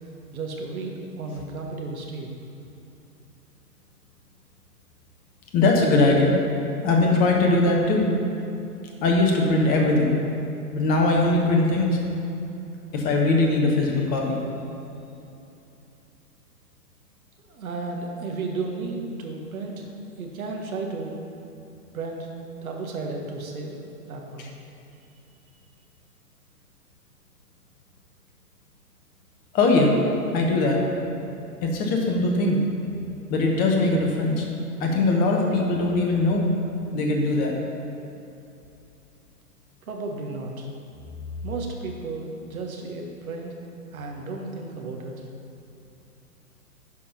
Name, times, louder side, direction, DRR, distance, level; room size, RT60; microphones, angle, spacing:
voice 1, 0.0-2.3 17.4-21.2 21.9-22.3 22.6-24.5 39.8-40.7 41.4-43.6 43.9-45.3, right 3 dB, 60° right, 1 dB, 1.6 m, -34 dB
voice 2, 5.5-6.4 6.8-8.1 9.0-10.1 10.7-12.0 12.9-14.4 29.5-30.0 30.3-30.8 31.6-32.6 33.3-34.4 34.8-36.5 36.9-37.5, left 2 dB, 20° left, 0 dB, 0.9 m, -21 dB
11.0 x 4.3 x 5.6 m, 2.8 s
figure-of-eight pair, 120°, 48 cm